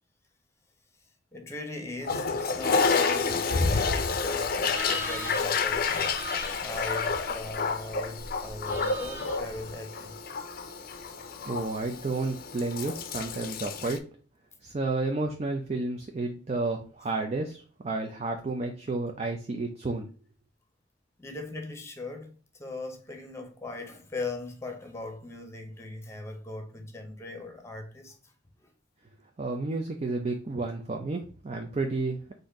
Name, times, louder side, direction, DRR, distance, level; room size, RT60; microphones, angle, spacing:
voice 1, 1.3-6.1 6.6-10.2 21.2-22.3 22.6-28.3 28.6-28.7, left 2 dB, 15° left, 0.8 m, -39 dB
Toilet flush, 2.0-14.0, left 4 dB, 50° left, 0.5 m, -29 dB
sound 1, 4.7-9.7, right 1 dB, 10° right, 0.8 m, -40 dB
voice 2, 11.5-14.0 14.6-20.1 29.4-32.2, right 3 dB, 35° right, 0.5 m, -31 dB
4.1 x 2.6 x 4.6 m
head